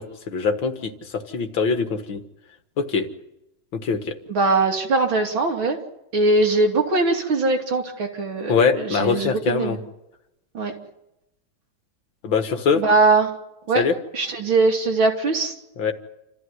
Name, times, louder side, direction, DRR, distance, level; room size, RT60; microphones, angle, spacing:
voice 1, 0.0-2.2 2.8-3.1 3.7-4.2 8.5-9.8 12.2-12.8 13.8-14.0 15.8-15.9, left 5 dB, 75° left, 7 dB, 2.4 m, -23 dB
voice 2, 4.3-5.8 6.1-9.8 10.5-10.7 12.8-13.3 13.7-13.8 14.1-15.6, right 3 dB, 80° right, 2 dB, 3.6 m, -21 dB
28.0 x 14.5 x 9.6 m, 0.89 s
omnidirectional pair, 2.2 m